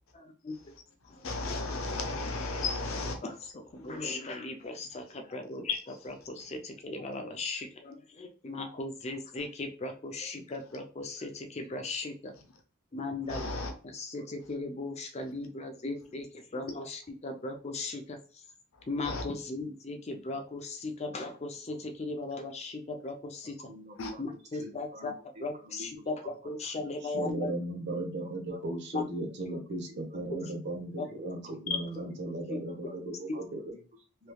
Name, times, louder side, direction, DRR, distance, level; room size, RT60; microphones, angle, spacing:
voice 1, 0.1-0.7 1.0-1.3 3.2-5.8 6.1-12.3 12.9-13.4 13.8-18.4 18.9-23.6 24.2-25.1 25.4-27.5 28.9-29.0 31.0-31.1 32.5-32.6, left 3 dB, 30° left, 0.5 m, -37 dB
voice 2, 1.2-3.2 5.7-5.8 13.3-13.7 19.0-19.2 24.0-24.1 31.7-31.8, left 3 dB, 90° left, 0.7 m, -33 dB
voice 3, 23.6-26.3 26.6-26.9 28.2-28.8 29.5-30.5 31.0-31.2 31.4-32.3 32.6-34.3, left 1 dB, 35° right, 1.1 m, -50 dB
voice 4, 27.1-31.4 31.7-33.5, right 1 dB, 55° right, 0.8 m, -36 dB
3.2 x 3.0 x 2.2 m
head